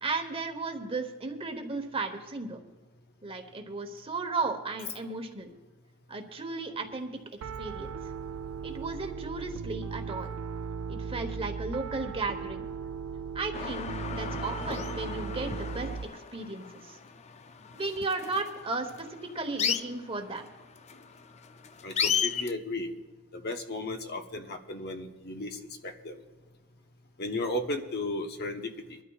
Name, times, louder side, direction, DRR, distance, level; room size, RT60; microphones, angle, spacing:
voice 1, 0.0-2.6 3.2-5.5 6.1-7.2 7.6-8.0 8.6-10.3 10.9-12.7 13.3-17.0 17.7-20.5, right 3 dB, 25° right, 5 dB, 1.1 m, -35 dB
Piano, 7.4-16.0, right 6 dB, 90° right, 0.4 m, -37 dB
sound 1, 13.5-22.5, left 7 dB, 30° left, 0.4 m, -34 dB
voice 2, 21.8-22.9 23.3-26.2 27.2-29.0, left 2 dB, 50° left, 5 dB, 1.0 m, -35 dB
23.5 x 12.5 x 2.4 m, 1.2 s
head